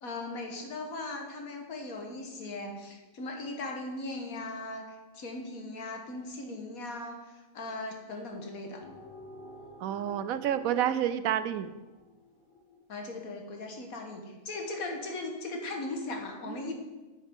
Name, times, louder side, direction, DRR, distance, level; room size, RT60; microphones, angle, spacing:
voice 1, 0.0-4.9 5.1-8.8 12.9-16.7, left 2 dB, 90° left, 2 dB, 1.8 m, -38 dB
sound 1, 8.8-12.8, left 2 dB, 65° left, 2.9 m, -50 dB
voice 2, 9.8-11.7 16.5-16.7, right 10 dB, 80° right, 13 dB, 1.0 m, -29 dB
9.1 x 8.8 x 3.7 m, 1.1 s
omnidirectional pair, 1.5 m